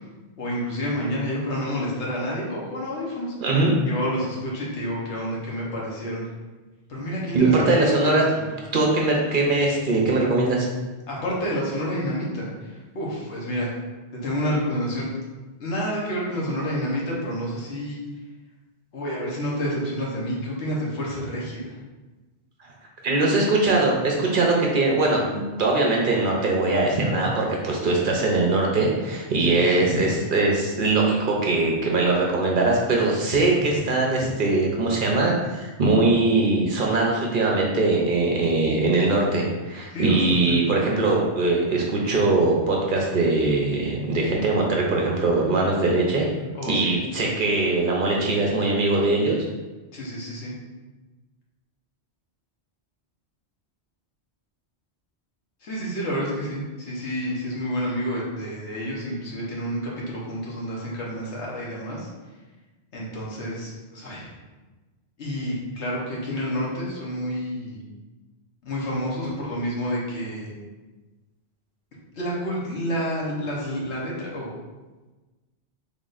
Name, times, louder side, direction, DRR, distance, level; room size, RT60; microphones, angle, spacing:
voice 1, 0.4-3.3 3.9-6.3 6.9-8.5 11.1-13.7 14.2-15.1 15.6-18.0 18.9-21.8 29.4-29.9 39.9-40.6 46.5-46.9 49.9-50.5 55.6-62.1 62.9-64.3 65.2-67.8 68.6-70.5 72.1-74.5, equal, 80° left, -5 dB, 1.3 m, -29 dB
voice 2, 3.4-3.7 7.3-8.2 8.7-10.7 22.6-22.7 23.0-46.3 46.7-49.4, right 2 dB, 55° right, -1 dB, 0.7 m, -21 dB
4.0 x 3.5 x 2.5 m, 1.2 s
omnidirectional pair, 1.2 m